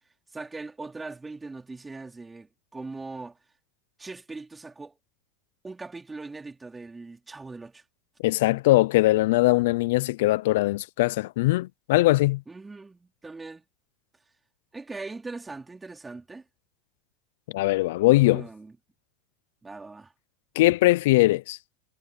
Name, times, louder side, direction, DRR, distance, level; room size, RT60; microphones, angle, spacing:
voice 1, 0.3-3.4 4.0-4.9 5.6-7.8 12.5-13.6 14.7-16.4 18.2-18.7 19.6-20.1, right 3 dB, 15° right, 4.1 m, -40 dB
voice 2, 8.2-12.4 17.5-18.4 20.6-21.6, left 18 dB, 80° left, 0.4 m, -21 dB
supercardioid pair, 110°, 0 cm